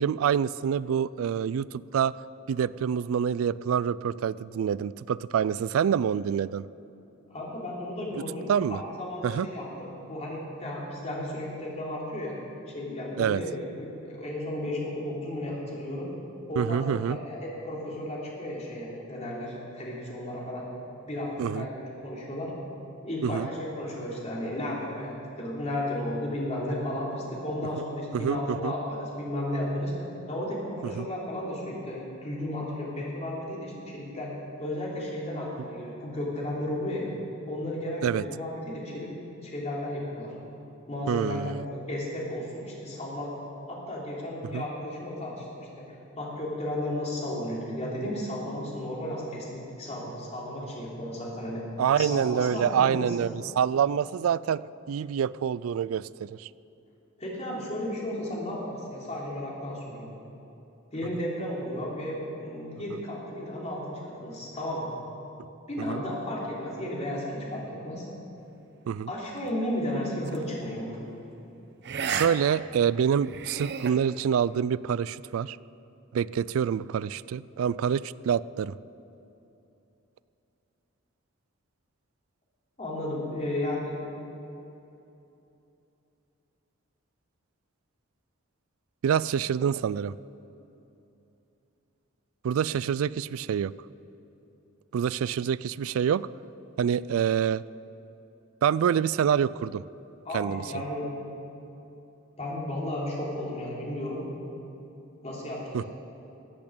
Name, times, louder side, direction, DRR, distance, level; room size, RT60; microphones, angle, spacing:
voice 1, 0.0-2.1 2.5-6.7 8.5-8.8 9.2-9.5 13.2-13.4 16.6-17.2 21.4-21.6 23.2-23.5 28.1-28.7 31.0-31.1 38.0-38.2 41.1-41.6 44.5-44.6 51.8-54.6 54.9-56.5 65.9-66.0 68.9-69.1 72.2-75.6 76.1-78.7 89.0-90.1 92.4-93.7 94.9-96.3 96.8-97.6 98.6-99.8 100.3-100.6 105.7-105.8, right 8 dB, 85° right, 20 dB, 0.3 m, -26 dB
voice 2, 7.3-12.4 12.7-16.1 16.5-20.7 21.1-22.5 23.0-29.9 30.3-34.3 34.6-37.1 37.5-39.1 39.4-40.3 40.9-43.3 43.7-51.6 52.0-53.3 57.2-60.1 60.9-64.9 65.7-68.1 69.1-71.0 82.8-84.0 100.2-101.1 102.4-104.2 105.2-105.9, left 1 dB, 35° left, -4 dB, 3.3 m, -34 dB
sound 1, 70.3-70.5 71.8-72.3 72.6-72.7 73.2-73.9, right 7 dB, 55° right, 0.8 m, -32 dB
14.0 x 8.8 x 8.5 m, 2.9 s
head